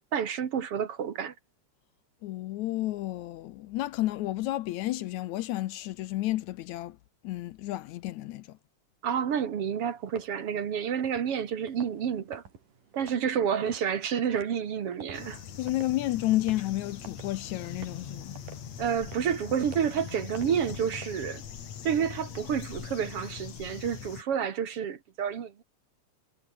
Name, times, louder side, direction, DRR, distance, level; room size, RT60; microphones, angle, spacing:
voice 1, 0.1-1.3 9.0-12.4 12.9-15.4 18.8-21.4 21.8-25.6, right 8 dB, 50° right, 2.4 m, -29 dB
voice 2, 2.2-7.0 7.2-8.6 15.6-18.4, left 16 dB, 75° left, 2.0 m, -31 dB
sound 1, 9.8-21.1, right 6 dB, 85° right, 5.4 m, -52 dB
sound 2, 15.1-24.2, left 8 dB, 60° left, 3.3 m, -42 dB
omnidirectional pair, 3.6 m